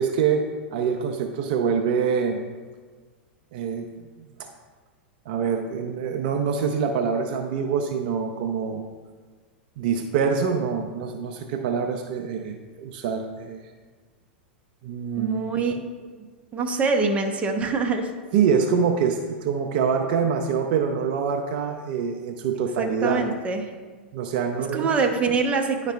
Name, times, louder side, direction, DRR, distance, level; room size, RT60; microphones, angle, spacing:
voice 1, 0.0-2.4 3.5-3.9 4.4-4.5 5.3-8.8 9.8-13.6 14.8-15.4 18.3-23.2 24.1-25.0, right 6 dB, 55° right, 4 dB, 0.5 m, -25 dB
voice 2, 15.2-15.7 16.5-18.1 22.8-23.6 24.7-25.9, right 4 dB, 20° right, 3 dB, 0.8 m, -24 dB
10.0 x 4.9 x 2.3 m, 1.4 s
hypercardioid pair, 95°, 6 cm